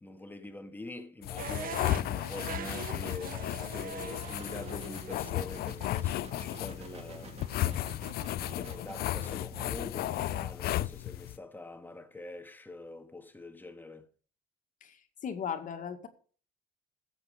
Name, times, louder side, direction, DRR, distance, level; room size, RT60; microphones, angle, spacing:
voice 1, 0.0-7.5 8.5-14.1, left 2 dB, 10° left, 1.8 m, -45 dB
sound 1, 1.2-11.4, left 15 dB, 70° left, 0.5 m, -34 dB
sound 2, 1.4-7.4, right 8 dB, 55° right, 1.4 m, -44 dB
sound 3, 4.2-10.6, right 4 dB, 40° right, 3.2 m, -49 dB
voice 2, 15.2-16.1, left 7 dB, 50° left, 2.0 m, -36 dB
15.5 x 8.0 x 5.2 m
cardioid pair, 110°, 17 cm